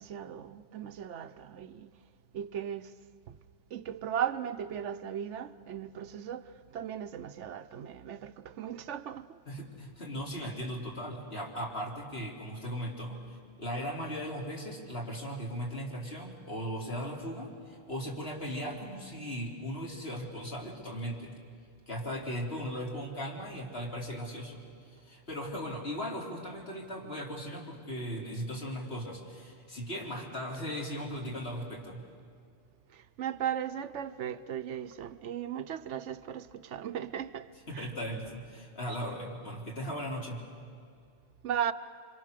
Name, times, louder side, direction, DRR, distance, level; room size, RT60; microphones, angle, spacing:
voice 1, 0.0-1.9 2.3-2.9 3.7-6.5 6.7-9.3 32.9-37.5 37.7-37.9 41.4-41.7, right 9 dB, 90° right, 1.1 m, -37 dB
voice 2, 9.5-13.2 13.6-21.3 21.9-24.6 25.0-32.0 37.7-40.4, equal, 60° left, 3.7 m, -38 dB
26.0 x 26.0 x 6.7 m
omnidirectional pair, 1.2 m